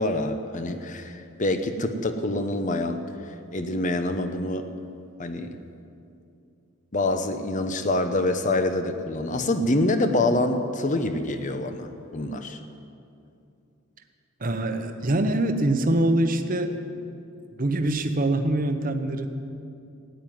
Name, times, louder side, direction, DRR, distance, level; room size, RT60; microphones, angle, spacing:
voice 1, 0.0-4.7 5.2-5.5 6.9-12.6, left 2 dB, 35° left, 8 dB, 0.9 m, -26 dB
voice 2, 14.4-16.8 17.6-19.3, right 1 dB, 40° right, 7 dB, 1.0 m, -24 dB
14.5 x 9.2 x 9.3 m, 2.6 s
head